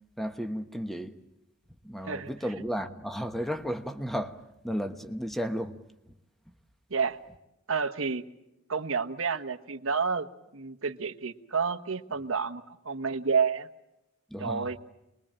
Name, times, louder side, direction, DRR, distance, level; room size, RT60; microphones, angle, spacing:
voice 1, 0.2-1.1 1.8-5.8 6.1-6.2 14.3-14.7, equal, ahead, 1.2 m, -33 dB
voice 2, 7.7-8.2 8.7-10.3 10.5-13.7 14.4-14.8, right 5 dB, 85° right, 1.2 m, -29 dB
27.0 x 21.5 x 8.8 m
head